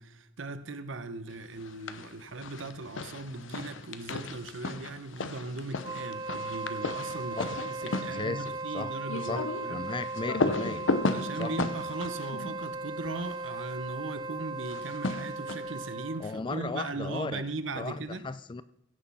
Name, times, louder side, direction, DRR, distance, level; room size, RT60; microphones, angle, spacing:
voice 1, 0.0-9.9 11.1-18.2, right 3 dB, 85° right, 0.9 m, -38 dB
sound 1, 1.6-2.1 2.4-13.4 14.6-15.9, left 3 dB, 80° left, 0.8 m, -35 dB
Wind instrument woodwind instrument, 5.8-16.4, right 3 dB, 25° right, 0.6 m, -37 dB
voice 2, 7.8-8.9 9.3-10.9 11.4-11.6 16.2-17.4 17.8-18.6, left 3 dB, 25° left, 0.4 m, -36 dB
16.0 x 6.3 x 5.7 m
head